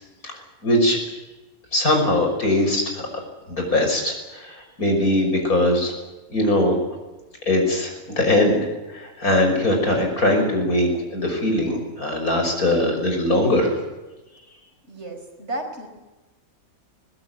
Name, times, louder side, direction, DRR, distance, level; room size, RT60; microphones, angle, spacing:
voice 1, 0.6-1.0 1.7-3.0 3.5-5.9 6.3-6.8 7.5-13.8, left 1 dB, 80° left, 3 dB, 6.5 m, -21 dB
voice 2, 14.8-15.9, right 1 dB, 50° right, 4 dB, 5.0 m, -33 dB
21.5 x 20.5 x 9.4 m, 1.1 s
omnidirectional pair, 1.5 m